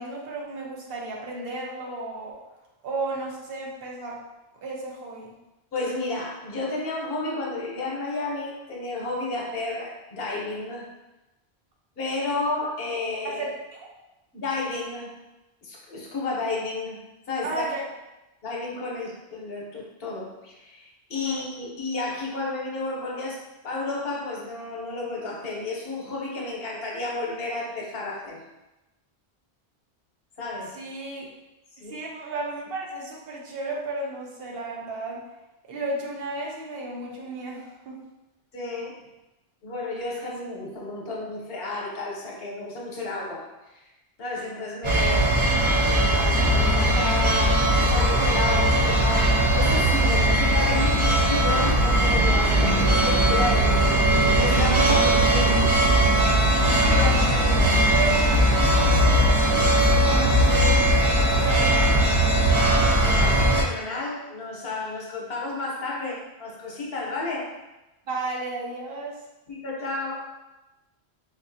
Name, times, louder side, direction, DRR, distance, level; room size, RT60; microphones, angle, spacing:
voice 1, 0.0-2.3 2.8-4.2 4.6-5.3 12.3-12.4 13.2-13.9 17.4-17.9 21.2-21.4 30.7-31.3 31.9-35.2 35.7-38.0 54.9-55.0 56.8-58.5 58.7-62.4 68.1-69.2, right 2 dB, 65° right, -2 dB, 0.8 m, -33 dB
voice 2, 5.7-10.9 12.0-13.4 14.3-15.2 15.6-17.0 17.3-17.6 18.4-28.4 30.4-30.8 31.8-32.0 38.5-39.0 39.6-43.4 43.7-43.8 44.2-45.3 45.8-54.0 54.4-55.7 62.9-67.5 69.5-70.2, left 3 dB, 65° left, -3 dB, 0.9 m, -32 dB
sound 1, 44.8-63.6, right 1 dB, 45° right, 0.4 m, -19 dB
4.1 x 2.4 x 2.5 m, 0.99 s
omnidirectional pair, 1.1 m